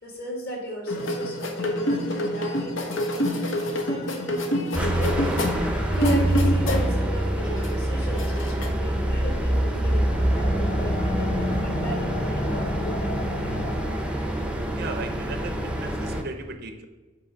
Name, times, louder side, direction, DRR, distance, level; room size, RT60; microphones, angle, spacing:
voice 1, 0.0-5.4 5.9-13.5, equal, 55° left, -1 dB, 1.9 m, -36 dB
sound 1, 0.9-7.0 7.4-8.7, left 1 dB, 80° left, 0.9 m, -27 dB
sound 2, 4.7-16.2, right 1 dB, 5° right, 0.6 m, -26 dB
sound 3, 8.8-14.2, equal, 25° left, 0.8 m, -28 dB
voice 2, 14.7-16.9, right 3 dB, 55° right, 7 dB, 0.6 m, -36 dB
8.2 x 2.9 x 5.1 m, 1.2 s
head